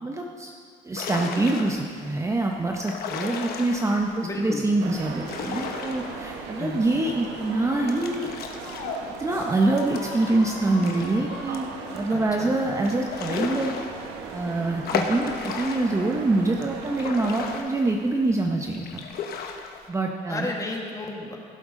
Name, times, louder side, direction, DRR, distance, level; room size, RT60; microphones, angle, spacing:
voice 1, 0.0-0.5 0.8-8.3 9.2-11.7 11.9-13.7 14.3-19.0 19.9-20.5, right 2 dB, 15° right, 1 dB, 0.7 m, -25 dB
sound 1, 1.0-2.0 2.7-4.1 5.0-6.6 7.0-7.1 7.9-11.1 11.5-11.6 12.0-12.1 12.8-14.4 14.9-16.1 16.6-18.2 18.7-19.9, left 5 dB, 65° left, 1.1 m, -34 dB
voice 2, 4.2-4.6 6.6-6.8 12.1-12.6 20.3-21.4, left 2 dB, 20° left, 0 dB, 1.6 m, -32 dB
sound 2, 4.8-17.6, right 5 dB, 85° right, 1.1 m, -38 dB
Squeak, 7.0-9.0 9.5-11.6, left 5 dB, 85° left, 1.1 m, -41 dB
16.5 x 7.8 x 3.7 m, 2.2 s
cardioid pair, 110°, 17 cm